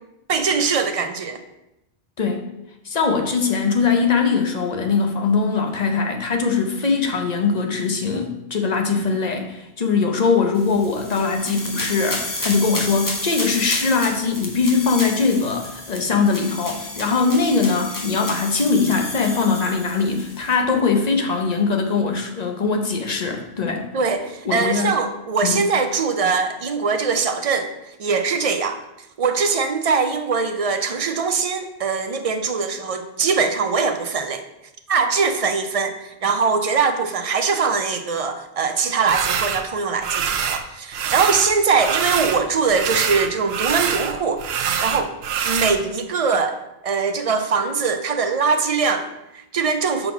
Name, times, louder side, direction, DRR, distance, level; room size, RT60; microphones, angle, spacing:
voice 1, 0.3-1.4 23.9-27.7 28.0-28.8 29.2-34.4 34.9-44.4 44.8-45.1 45.4-46.6 46.8-50.1, right 5 dB, 45° right, 7 dB, 0.5 m, -22 dB
voice 2, 2.8-23.9 24.4-24.9 25.4-25.6, left 4 dB, 40° left, 4 dB, 0.9 m, -21 dB
sound 1, 10.5-20.5, left 1 dB, 20° left, 1.0 m, -32 dB
sound 2, 39.1-39.6 40.0-40.6 40.9-42.4 42.7-45.8, right 7 dB, 75° right, 0.8 m, -24 dB
5.5 x 4.0 x 5.8 m, 0.89 s
omnidirectional pair, 1.1 m